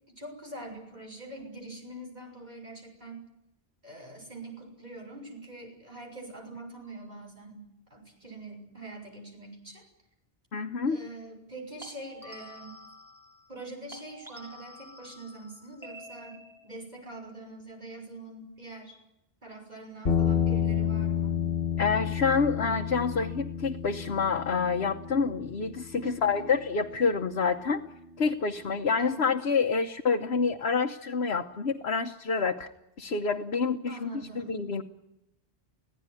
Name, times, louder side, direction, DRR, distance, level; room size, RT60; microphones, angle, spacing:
voice 1, 0.1-3.3 3.8-9.8 10.8-12.8 13.5-19.0 19.4-21.5 25.9-26.5 29.0-29.3 33.9-34.6, right 2 dB, 45° right, 2 dB, 6.5 m, -44 dB
sound 1, 6.8-7.1 11.8-13.6 13.9-16.8, equal, ahead, 6.8 m, -49 dB
voice 2, 10.5-11.0 21.8-27.8 28.2-32.7 33.0-34.1 34.4-34.8, left 5 dB, 80° left, 3 dB, 1.3 m, -27 dB
sound 2, 20.0-28.4, left 8 dB, 65° left, 1.8 m, -31 dB
26.0 x 17.0 x 9.8 m, 0.85 s
omnidirectional pair, 1.0 m